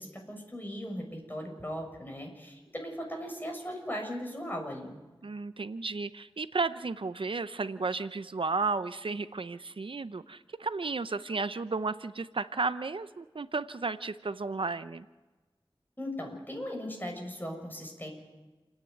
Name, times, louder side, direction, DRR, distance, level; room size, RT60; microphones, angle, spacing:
voice 1, 0.0-5.0 16.0-18.1, equal, 20° left, 2 dB, 6.6 m, -38 dB
voice 2, 5.2-15.0, right 4 dB, 70° right, 13 dB, 0.6 m, -33 dB
29.5 x 9.8 x 9.2 m, 1.2 s
wide cardioid pair, 50°, 9 cm